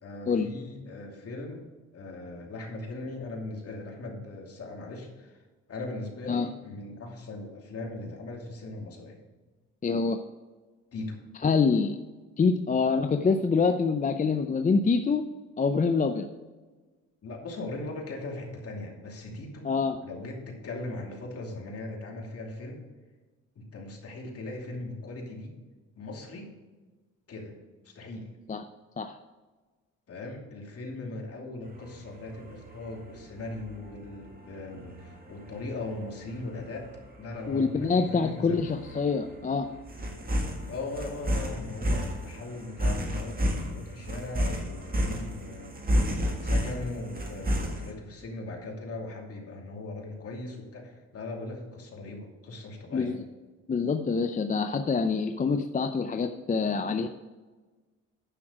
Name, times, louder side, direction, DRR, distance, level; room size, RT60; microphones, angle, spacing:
voice 1, 0.0-1.6 1.9-5.4 5.7-9.2 10.9-11.2 17.2-19.7 20.0-22.8 23.6-25.5 26.0-26.5 27.3-27.5 27.8-28.3 30.1-36.9 37.2-38.6 40.7-53.2, left 2 dB, 50° left, 0 dB, 2.7 m, -39 dB
voice 2, 9.8-10.2 11.4-12.0 12.4-15.2 15.6-16.3 19.6-20.0 28.5-28.6 29.0-29.2 37.5-39.7 52.9-53.1 53.7-57.1, left 4 dB, 25° left, 7 dB, 0.6 m, -25 dB
sound 1, 31.7-47.9, equal, 30° right, 1.8 m, -32 dB
10.0 x 6.1 x 4.9 m, 1.3 s
cardioid pair, 90°, 30 cm